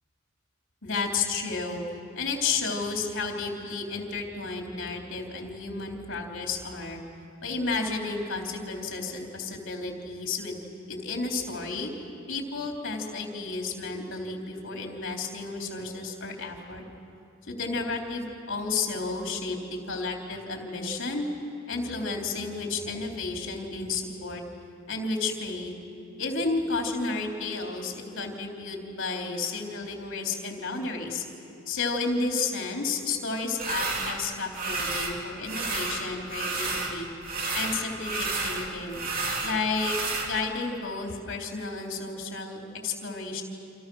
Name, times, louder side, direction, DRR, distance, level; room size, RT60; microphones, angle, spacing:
voice 1, 0.8-1.8 2.1-7.0 7.4-10.6 10.9-11.9 12.3-16.8 17.5-21.3 21.7-24.4 24.9-25.8 26.2-31.2 31.7-37.1 37.5-39.0 39.4-40.0 40.3-43.4, left 4 dB, 60° left, 1 dB, 3.6 m, -32 dB
sound 1, 33.6-34.2 34.5-35.2 35.4-36.9 37.2-40.3, right 3 dB, 40° right, 2.9 m, -31 dB
28.0 x 27.5 x 6.3 m, 2.6 s
head